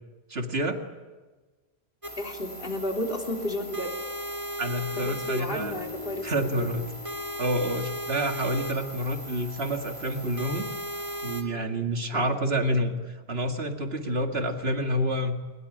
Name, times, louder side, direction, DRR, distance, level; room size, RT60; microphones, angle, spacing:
voice 1, 0.3-0.8 4.6-5.7 6.2-6.9 7.4-10.7 11.2-15.4, right 1 dB, 75° right, 4 dB, 2.4 m, -28 dB
sound 1, 2.0-11.4, equal, 30° right, 2.3 m, -37 dB
voice 2, 2.2-3.9 4.9-6.2 6.6-6.8 12.1-12.4, left 1 dB, 60° left, 1 dB, 3.5 m, -32 dB
sound 2, 5.6-8.8, left 5 dB, 30° left, 1.4 m, -43 dB
22.0 x 20.5 x 9.9 m, 1.3 s
omnidirectional pair, 1.1 m